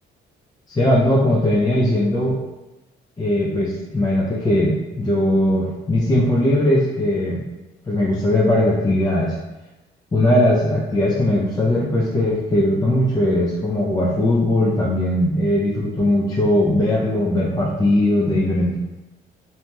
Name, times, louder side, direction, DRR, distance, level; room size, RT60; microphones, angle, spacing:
voice 1, 0.7-2.4 3.2-7.4 7.9-9.4 10.1-18.8, left 1 dB, 20° left, -5 dB, 0.5 m, -19 dB
2.9 x 2.7 x 2.2 m, 1.0 s
cardioid pair, 90°, 20 cm